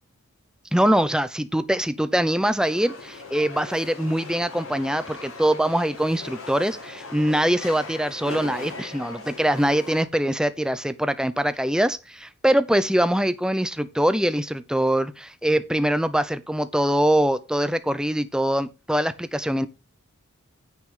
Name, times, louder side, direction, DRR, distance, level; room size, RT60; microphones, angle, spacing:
voice 1, 0.7-19.7, right 1 dB, 5° right, 0.7 m, -23 dB
sound 1, 2.6-10.0, left 3 dB, 75° left, 6.3 m, -39 dB
9.6 x 9.0 x 3.8 m
head